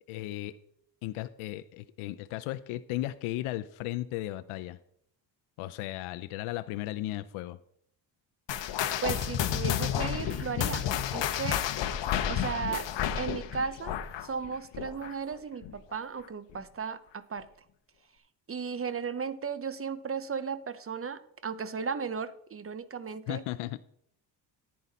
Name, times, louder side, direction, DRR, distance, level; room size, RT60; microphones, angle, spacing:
voice 1, 0.1-0.6 1.0-4.8 5.6-7.6 23.3-23.8, left 15 dB, 75° left, 12 dB, 0.6 m, -35 dB
sound 1, 8.5-15.3 15.6-15.9 16.5-16.6 17.4-17.5, left 10 dB, 60° left, 1.0 m, -31 dB
voice 2, 9.0-11.6 12.3-12.9 13.2-17.5 18.5-23.4, right 6 dB, 25° right, 15 dB, 0.8 m, -35 dB
10.5 x 8.6 x 4.1 m, 0.72 s
supercardioid pair, 65°, 50 cm